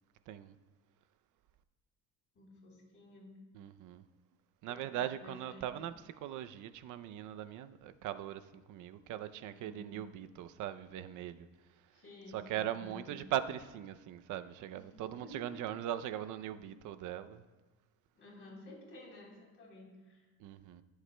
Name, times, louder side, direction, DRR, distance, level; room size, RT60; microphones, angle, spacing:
voice 1, 0.3-0.6 3.5-4.0 4.6-11.5 12.3-17.4 20.4-20.8, right 11 dB, 55° right, 0.5 m, -40 dB
voice 2, 2.3-3.3 4.7-5.8 9.5-10.0 11.9-13.2 14.7-15.7 18.1-20.2, left 1 dB, 35° left, 3.6 m, -53 dB
21.5 x 8.1 x 2.2 m
cardioid pair, 160°, 38 cm